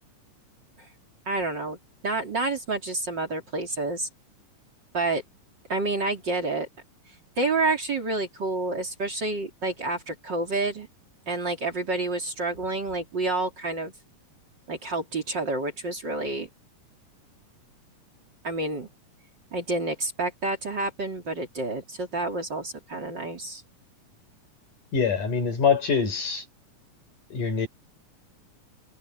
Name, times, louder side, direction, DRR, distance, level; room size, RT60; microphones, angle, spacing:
voice 1, 1.3-1.8 2.0-4.1 4.9-5.2 5.7-6.7 7.4-10.9 11.3-13.9 14.7-16.5 18.4-18.9 19.5-23.6, right 2 dB, 35° right, 3.3 m, -29 dB
voice 2, 24.9-26.4 27.3-27.7, left 6 dB, 70° left, 5.9 m, -24 dB
omnidirectional pair, 3.7 m